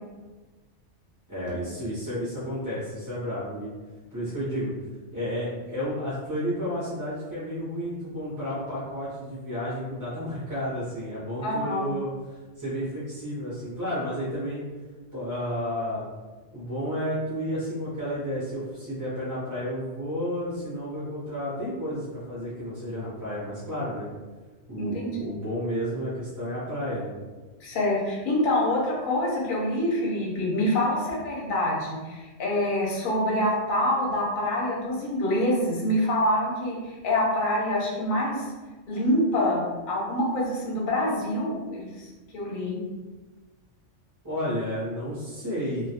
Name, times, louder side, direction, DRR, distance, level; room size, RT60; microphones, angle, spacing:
voice 1, 1.3-3.7 4.1-4.7 5.1-12.1 12.6-14.6 15.1-16.1 16.5-24.1 24.7-27.1 44.2-45.9, equal, 30° right, -10 dB, 0.4 m, -31 dB
voice 2, 11.4-11.8 24.8-25.1 27.6-38.5 38.9-42.1 42.3-42.8, left 1 dB, 50° left, -3 dB, 0.7 m, -26 dB
2.2 x 2.1 x 2.7 m, 1.3 s
omnidirectional pair, 1.3 m